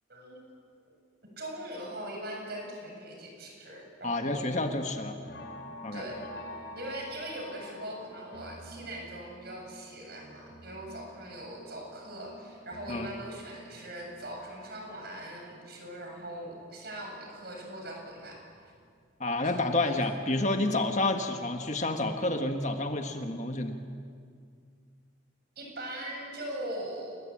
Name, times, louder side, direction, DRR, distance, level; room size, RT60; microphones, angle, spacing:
voice 1, 0.1-0.4 1.4-4.6 5.9-6.2 6.8-18.4 18.6-18.7 19.5-20.4 20.7-20.8 25.6-27.2, right 1 dB, 50° right, 1 dB, 7.5 m, -41 dB
voice 2, 4.0-5.2 5.8-6.0 12.9-13.1 19.2-23.8, left 2 dB, 35° left, 5 dB, 1.5 m, -29 dB
sound 1, 4.8-16.9 17.3-18.9 19.3-19.6 19.9-20.0, equal, 55° left, 3.8 m, -49 dB
29.0 x 21.5 x 8.7 m, 2.2 s
head